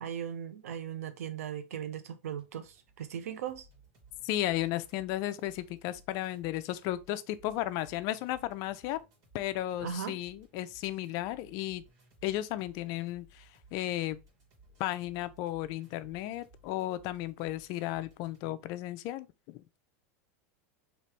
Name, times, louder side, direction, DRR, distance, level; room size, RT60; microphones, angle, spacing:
voice 1, 0.0-3.7 9.8-10.2, right 9 dB, 90° right, 0.6 m, -38 dB
sound 1, 2.4-18.4, right 2 dB, 50° right, 1.8 m, -61 dB
voice 2, 4.2-9.0 9.3-11.8 12.2-14.2 14.8-19.6, left 14 dB, 55° left, 0.4 m, -34 dB
3.0 x 2.8 x 3.3 m
supercardioid pair, 120°, 8 cm